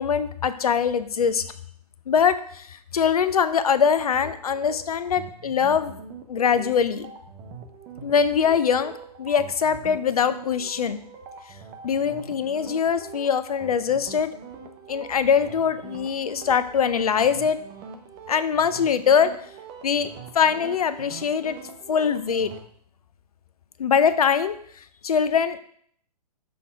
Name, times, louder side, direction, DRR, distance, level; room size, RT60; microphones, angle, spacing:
voice 1, 0.0-1.4 2.1-5.9 6.3-7.1 8.0-8.9 9.2-11.0 11.8-14.3 14.9-17.6 18.3-19.3 19.8-21.6 21.9-22.5 23.8-24.6 25.0-25.6, left 7 dB, 60° left, 13 dB, 0.6 m, -22 dB
sound 1, 4.0-22.6, right 6 dB, 25° right, 0.6 m, -43 dB
6.1 x 3.7 x 4.6 m, 0.62 s
figure-of-eight pair, 120°, 21 cm